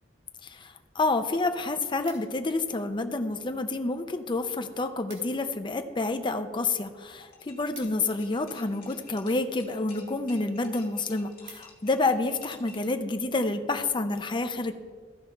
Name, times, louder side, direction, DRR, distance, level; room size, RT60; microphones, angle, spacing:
voice 1, 0.4-14.7, left 3 dB, 25° left, 7 dB, 0.6 m, -29 dB
sound 1, 2.1-2.7 3.4-3.9 4.2-4.3 4.6-4.7 4.9-5.5 5.9-8.7 9.4-9.8 10.3-10.4 10.7-10.8 11.1-12.1 12.6-12.8, right 4 dB, 75° right, 2.4 m, -53 dB
sound 2, 7.1-12.9, left 4 dB, 50° left, 2.1 m, -52 dB
14.5 x 5.1 x 4.5 m, 1.5 s
head